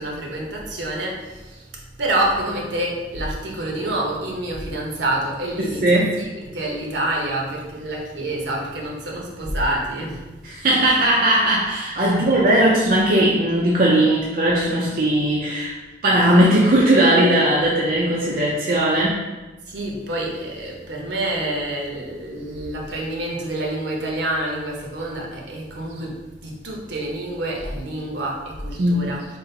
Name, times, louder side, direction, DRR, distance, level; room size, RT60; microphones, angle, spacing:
voice 1, 0.0-10.9 12.0-12.6 19.7-29.3, right 1 dB, 70° right, -2 dB, 0.9 m, -28 dB
voice 2, 5.6-6.1 10.4-15.7 16.0-19.2 28.8-29.0, right 1 dB, 50° right, -4 dB, 0.5 m, -18 dB
3.9 x 2.5 x 3.8 m, 1.2 s
head